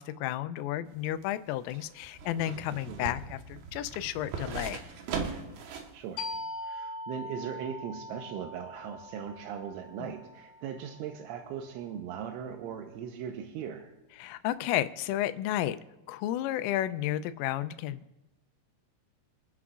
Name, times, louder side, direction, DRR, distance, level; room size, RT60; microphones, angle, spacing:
voice 1, 0.0-4.8 10.0-10.1 14.2-15.8 16.1-18.3, left 13 dB, 90° left, 13 dB, 3.2 m, -32 dB
sound 1, 0.9-6.0 6.3-6.4, right 5 dB, 70° right, 2.7 m, -39 dB
voice 2, 5.9-6.3 6.6-13.9, right 8 dB, 85° right, 3 dB, 3.2 m, -39 dB
sound 2, 6.2-11.5, left 1 dB, 70° left, 4.1 m, -42 dB
26.0 x 9.8 x 2.4 m, 0.97 s
omnidirectional pair, 5.7 m